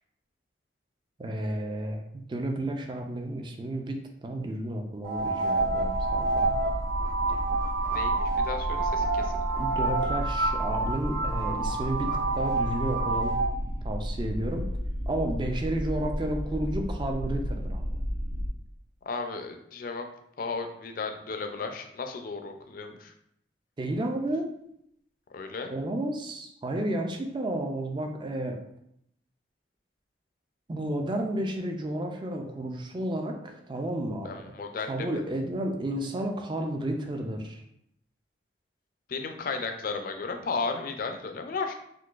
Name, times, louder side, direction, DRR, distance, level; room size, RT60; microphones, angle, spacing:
voice 1, 1.2-6.6 9.6-13.3 13.6-14.7 15.1-18.0 23.8-24.5 25.7-28.6 30.7-34.5 34.8-37.6, right 1 dB, 25° right, 4 dB, 0.3 m, -32 dB
sound 1, 5.0-13.5, right 3 dB, 60° right, 1.2 m, -28 dB
sound 2, 5.6-18.5, equal, 75° right, 0.5 m, -33 dB
voice 2, 7.9-9.4 19.1-20.1 20.4-23.1 25.3-25.7 34.2-35.2 39.1-41.7, left 4 dB, 50° left, 6 dB, 0.4 m, -34 dB
3.7 x 2.5 x 2.4 m, 0.73 s
head